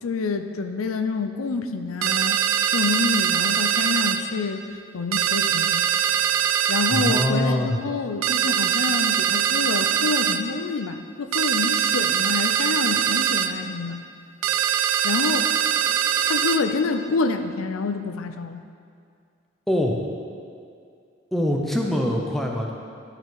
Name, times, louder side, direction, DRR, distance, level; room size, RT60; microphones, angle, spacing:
voice 1, 0.0-2.4 2.7-4.6 4.9-5.9 6.7-14.0 15.0-15.5 16.2-18.6, left 4 dB, 90° left, 8 dB, 0.5 m, -27 dB
sound 1, 2.0-4.2 5.1-7.3 8.2-10.4 11.3-13.5 14.4-16.6, right 9 dB, 90° right, 0.4 m, -22 dB
voice 2, 6.8-7.8 19.7-20.0 21.3-22.7, left 1 dB, ahead, -1 dB, 0.6 m, -23 dB
12.0 x 4.6 x 3.9 m, 2.3 s
head